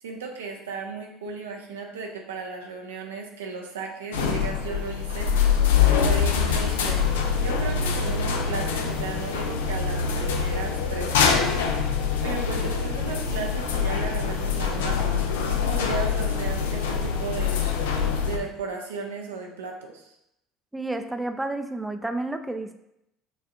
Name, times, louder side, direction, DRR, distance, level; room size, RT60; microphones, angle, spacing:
voice 1, 0.0-5.3 5.9-7.0 7.4-15.0 15.4-17.7 18.2-20.2, right 4 dB, 80° right, 1 dB, 0.6 m, -35 dB
sound 1, 4.1-18.4, left 6 dB, 80° left, 0.4 m, -24 dB
voice 2, 20.7-22.7, right 2 dB, 10° right, 7 dB, 0.5 m, -30 dB
6.7 x 2.4 x 2.7 m, 0.81 s
hypercardioid pair, 65°, 0 cm